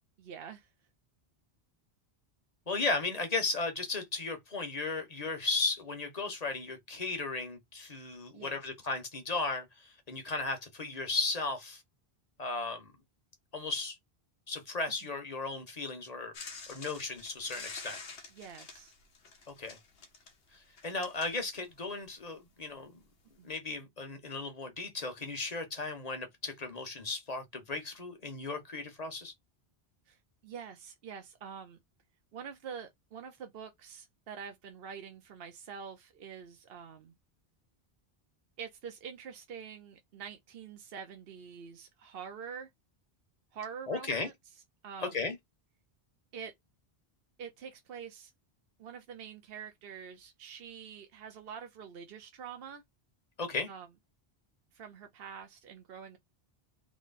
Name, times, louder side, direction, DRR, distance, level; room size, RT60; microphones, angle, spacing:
voice 1, 0.2-0.7 8.3-8.6 15.0-15.1 18.3-18.9 23.4-23.5 30.1-31.8 32.3-37.1 38.6-42.7 43.5-44.3 44.8-45.2 46.3-46.5 47.4-48.3 48.8-52.8 53.7-53.9 54.7-56.2, right 7 dB, 70° right, 0.9 m, -46 dB
voice 2, 2.7-11.8 12.4-12.9 13.5-14.0 14.5-16.3 16.7-18.0 19.5-19.8 20.5-22.9 23.4-29.3 43.9-44.3 45.0-45.4 53.4-53.7, left 3 dB, 40° left, 1.2 m, -35 dB
sound 1, 16.3-22.0 23.0-23.1, left 4 dB, 75° left, 1.2 m, -48 dB
3.6 x 3.1 x 4.0 m
omnidirectional pair, 1.0 m